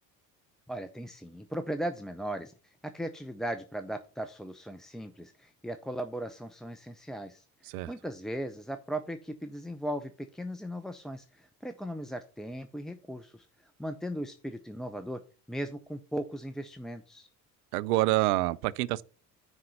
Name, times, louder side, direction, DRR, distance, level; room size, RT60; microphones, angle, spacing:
voice 1, 0.7-15.2 15.5-17.3, right 1 dB, ahead, 0.4 m, -38 dB
voice 2, 17.7-19.0, right 17 dB, 65° right, 0.6 m, -27 dB
9.7 x 3.8 x 5.5 m
figure-of-eight pair, 55°, 48 cm